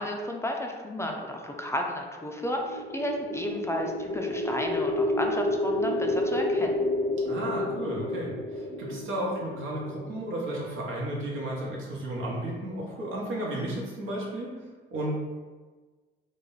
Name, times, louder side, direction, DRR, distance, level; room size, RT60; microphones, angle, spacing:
voice 1, 0.0-6.7, left 1 dB, 15° left, 1 dB, 0.4 m, -32 dB
sound 1, 2.5-10.7, left 1 dB, 70° left, 0.7 m, -30 dB
voice 2, 7.2-14.6 14.9-15.3, right 1 dB, 80° right, -3 dB, 1.0 m, -33 dB
3.1 x 2.1 x 3.8 m, 1.4 s
cardioid pair, 90°, 20 cm